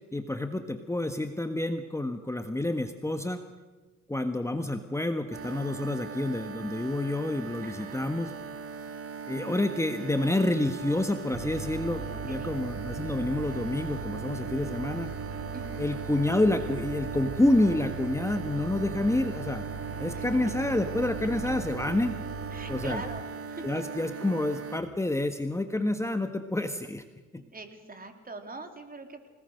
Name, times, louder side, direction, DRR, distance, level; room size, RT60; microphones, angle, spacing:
voice 1, 0.0-3.4 4.1-8.3 9.3-15.1 15.8-19.7 20.0-22.2 22.7-23.0 23.6-27.0 27.3-27.4, left 1 dB, 10° left, 7 dB, 1.6 m, -28 dB
sound 1, 5.3-24.8, right 5 dB, 50° right, 2.3 m, -40 dB
voice 2, 7.6-8.0 12.1-12.5 15.5-15.8 20.1-20.3 22.5-23.8 27.3-29.3, right 3 dB, 30° right, 6 dB, 4.0 m, -43 dB
sound 2, 11.3-23.2, right 5 dB, 65° right, 2.3 m, -38 dB
29.5 x 19.0 x 6.6 m, 1.3 s
cardioid pair, 90°, 30 cm